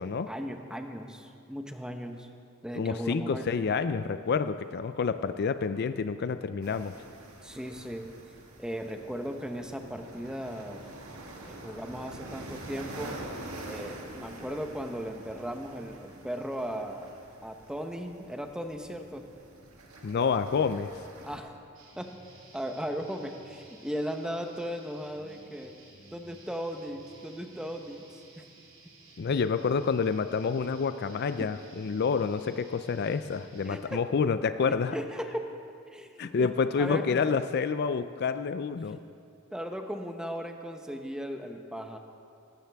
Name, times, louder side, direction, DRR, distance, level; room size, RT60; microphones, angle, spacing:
voice 1, 0.3-2.3 2.6-3.6 7.4-8.1 8.6-10.8 11.4-13.1 13.7-17.1 17.4-19.3 21.2-21.6 22.0-22.2 22.5-25.7 26.1-28.4 33.6-34.0 34.7-35.5 35.9-37.2 39.5-42.0, equal, 5° right, 5 dB, 0.8 m, -37 dB
voice 2, 2.8-6.9 20.0-20.9 29.2-34.9 36.2-39.0, left 5 dB, 50° left, 11 dB, 0.4 m, -28 dB
sound 1, 6.6-21.4, right 2 dB, 85° right, 1.9 m, -46 dB
sound 2, 21.8-33.8, right 2 dB, 70° right, 3.4 m, -54 dB
18.5 x 15.5 x 3.5 m, 2.4 s
head